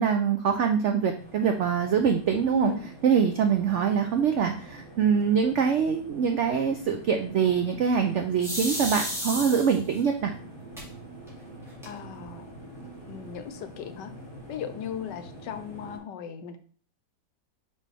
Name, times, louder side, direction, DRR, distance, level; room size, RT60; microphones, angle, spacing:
voice 1, 0.0-2.7 3.0-10.3, right 7 dB, 85° right, 5 dB, 0.6 m, -24 dB
sound 1, 1.1-16.0, right 1 dB, 40° left, 2.5 m, -45 dB
voice 2, 2.5-2.9 11.8-12.4 13.1-14.1 14.5-16.6, left 9 dB, 80° left, 10 dB, 1.3 m, -36 dB
sound 2, 8.4-10.0 10.8-10.9 11.3-11.4 11.6-12.2, equal, ahead, 2.5 m, -32 dB
5.5 x 5.1 x 3.4 m, 0.44 s
omnidirectional pair, 1.9 m